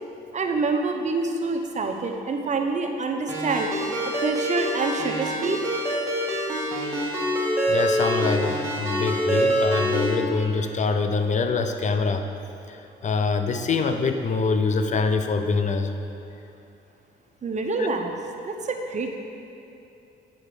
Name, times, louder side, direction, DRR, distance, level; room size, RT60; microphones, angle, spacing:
voice 1, 0.3-3.7 4.2-5.6 6.8-7.0 8.9-9.1 10.4-10.5 17.4-18.2 18.5-19.1, right 3 dB, 35° right, 3 dB, 0.8 m, -27 dB
Ringtone, 3.3-10.2, equal, 15° right, 1.8 m, -25 dB
voice 2, 7.7-12.3 12.7-12.8 13.0-15.9 17.8-17.9, left 4 dB, 35° left, 7 dB, 0.6 m, -24 dB
8.5 x 5.0 x 4.9 m, 2.8 s
cardioid pair, 90°, 20 cm